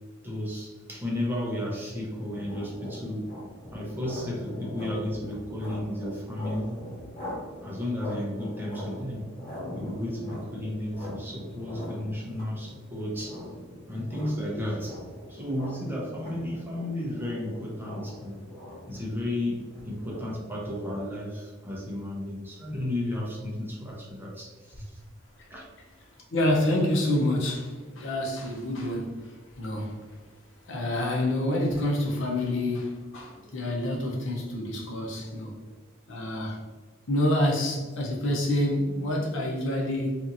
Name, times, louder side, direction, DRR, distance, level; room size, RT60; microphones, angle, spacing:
voice 1, 0.2-3.3 3.7-6.8 7.6-9.3 9.7-13.4 13.9-15.0 15.3-18.4 18.9-25.0 25.5-25.6, left 1 dB, 10° right, -4 dB, 0.6 m, -33 dB
sound 1, 2.0-21.1, left 1 dB, 20° left, 1.5 m, -42 dB
voice 2, 26.3-30.2 30.6-35.6 36.1-36.6 37.1-40.2, left 1 dB, 65° left, -1 dB, 0.7 m, -27 dB
2.8 x 2.5 x 2.6 m, 1.4 s
head